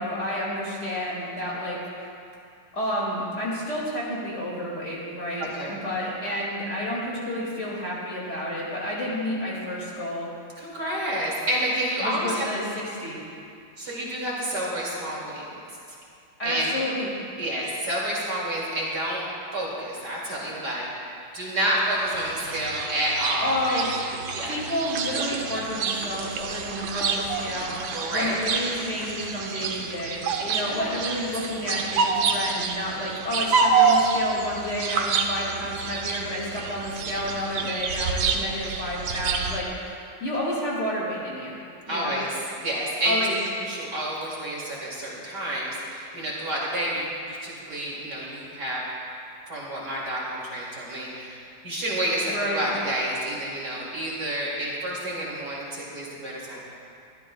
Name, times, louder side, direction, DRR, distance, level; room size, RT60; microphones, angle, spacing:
voice 1, 0.0-2.1 2.7-10.3 12.0-13.2 16.4-17.1 23.4-23.9 24.4-41.5 41.9-42.2 43.0-43.4 52.3-52.7, left 1 dB, 30° left, -6 dB, 2.8 m, -30 dB
voice 2, 5.4-5.7 10.6-12.4 13.8-15.4 16.4-16.7 17.4-19.2 19.5-20.9 21.3-23.9 24.3-24.5 27.9-28.4 30.4-31.1 41.9-42.3 42.6-43.3 43.6-48.8 49.5-56.6, right 1 dB, 45° right, -5 dB, 3.0 m, -29 dB
sound 1, 22.0-39.6, right 5 dB, 70° right, 1.6 m, -28 dB
23.0 x 13.0 x 2.4 m, 2.4 s
omnidirectional pair, 2.4 m